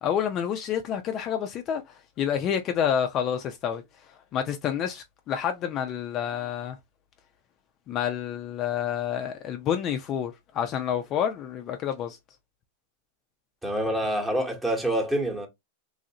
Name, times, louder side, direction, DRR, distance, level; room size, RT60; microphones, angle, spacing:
voice 1, 0.0-3.8 4.3-6.8 7.9-12.2, left 9 dB, 35° left, 0.4 m, -28 dB
voice 2, 13.6-15.5, right 1 dB, 10° right, 1.0 m, -26 dB
3.1 x 2.6 x 2.7 m
supercardioid pair, 135°, 0 cm